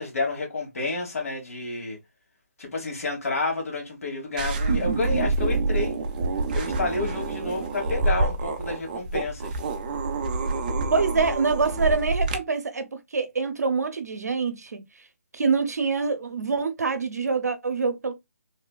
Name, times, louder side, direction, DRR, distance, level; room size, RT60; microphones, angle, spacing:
voice 1, 0.0-2.0 2.6-6.0 6.5-9.6, left 3 dB, 60° left, 1.5 m, -30 dB
sound 1, 4.4-12.4, right 3 dB, 30° right, 0.5 m, -27 dB
voice 2, 10.9-12.9 13.1-14.8 15.3-18.1, right 4 dB, 80° right, 0.7 m, -25 dB
3.1 x 2.1 x 2.3 m
figure-of-eight pair, 155°, 9 cm